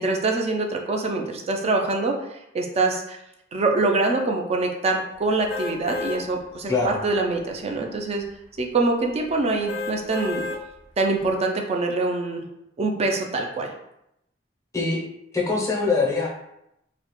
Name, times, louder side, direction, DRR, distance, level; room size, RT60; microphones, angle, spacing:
voice 1, 0.0-3.2 3.5-8.2 8.6-10.5 11.0-12.5 12.8-13.7, right 3 dB, 35° right, 2 dB, 0.3 m, -24 dB
sound 1, 5.5-6.2 6.8-6.9 9.7-10.6 11.2-11.3, left 3 dB, 75° left, 0.4 m, -30 dB
voice 2, 6.7-7.0 14.7-15.0 15.3-16.3, left 3 dB, 15° left, -3 dB, 0.6 m, -23 dB
2.3 x 2.0 x 2.9 m, 0.82 s
head